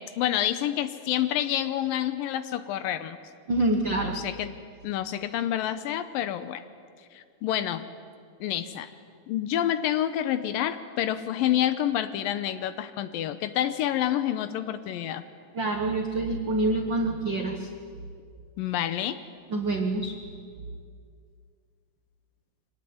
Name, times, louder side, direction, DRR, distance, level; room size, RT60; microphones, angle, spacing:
voice 1, 0.0-3.2 4.0-4.5 4.8-6.6 7.1-7.8 8.4-8.9 9.3-15.2 18.6-19.2, left 11 dB, 75° left, 12 dB, 2.4 m, -28 dB
voice 2, 3.5-4.2 15.5-17.7 19.5-20.1, right 2 dB, 85° right, 4 dB, 1.0 m, -26 dB
24.5 x 18.0 x 9.5 m, 2.2 s
omnidirectional pair, 4.4 m